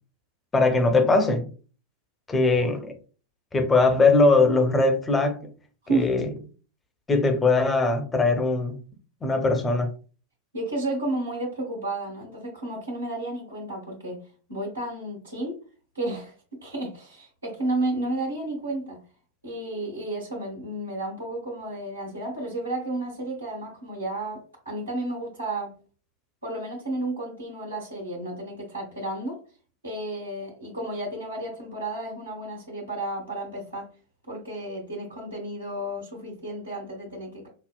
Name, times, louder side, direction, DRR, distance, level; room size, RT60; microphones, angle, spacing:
voice 1, 0.5-1.5 2.3-2.9 3.5-5.5 5.9-6.2 7.1-8.8 9.2-9.9, left 3 dB, 15° left, 0.7 m, -21 dB
voice 2, 10.5-14.2 14.5-15.5 15.9-16.3 16.6-19.0 19.4-25.7 26.4-29.4 29.8-33.9 34.3-37.5, right 2 dB, 80° right, 1.3 m, -32 dB
5.4 x 2.1 x 2.2 m
figure-of-eight pair, 90°, 0 cm